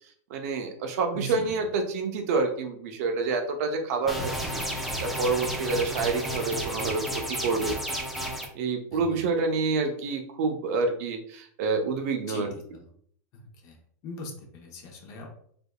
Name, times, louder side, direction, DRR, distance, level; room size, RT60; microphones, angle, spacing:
voice 1, 0.3-7.0 7.3-7.7 8.1-8.2 8.5-12.5, right 4 dB, 55° right, 4 dB, 0.7 m, -28 dB
voice 2, 1.1-1.6 8.9-9.3 12.3-12.5 12.7-12.8 13.6-13.8 14.0-15.3, left 1 dB, 35° left, 1 dB, 0.8 m, -40 dB
sound 1, 4.1-8.5, right 1 dB, ahead, 0.5 m, -32 dB
3.5 x 3.4 x 2.3 m, 0.63 s
supercardioid pair, 150°, 9 cm